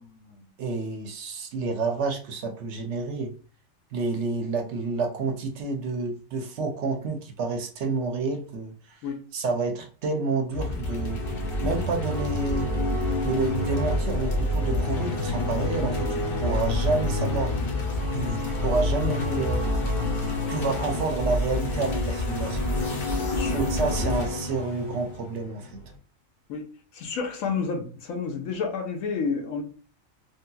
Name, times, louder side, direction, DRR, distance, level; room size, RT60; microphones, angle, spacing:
voice 1, 0.6-3.3 3.9-9.0 9.3-11.2 11.6-12.7 13.2-17.5 18.1-19.7 20.5-22.6 23.5-25.8, right 3 dB, 65° right, 4 dB, 0.8 m, -29 dB
sound 1, 10.5-25.9, left 1 dB, 50° left, 0.8 m, -27 dB
voice 2, 23.3-23.6 26.5-26.7 26.9-29.6, left 5 dB, 85° left, 4 dB, 1.1 m, -30 dB
3.2 x 2.8 x 2.2 m, 0.39 s
omnidirectional pair, 1.4 m